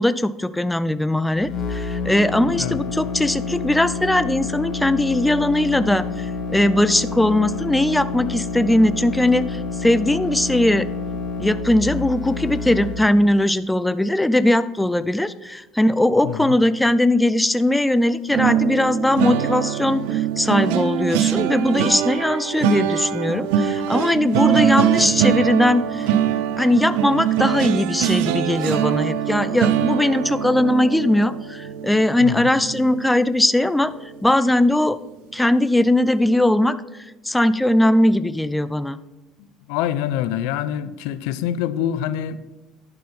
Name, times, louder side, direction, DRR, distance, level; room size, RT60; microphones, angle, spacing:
voice 1, 0.0-10.9 11.4-26.1 26.6-33.9 34.2-35.0 35.3-36.7 37.2-39.0, left 1 dB, 5° left, 0.4 m, -19 dB
sound 1, 1.3-13.0, left 4 dB, 50° left, 2.0 m, -29 dB
voice 2, 2.5-2.8 16.2-16.5 24.5-24.8 32.2-32.5 39.7-42.4, left 10 dB, 85° left, 0.5 m, -26 dB
sound 2, 18.3-33.5 33.9-34.1 34.4-34.6, right 10 dB, 85° right, 0.6 m, -23 dB
11.0 x 5.6 x 4.3 m
cardioid pair, 120°, 0 cm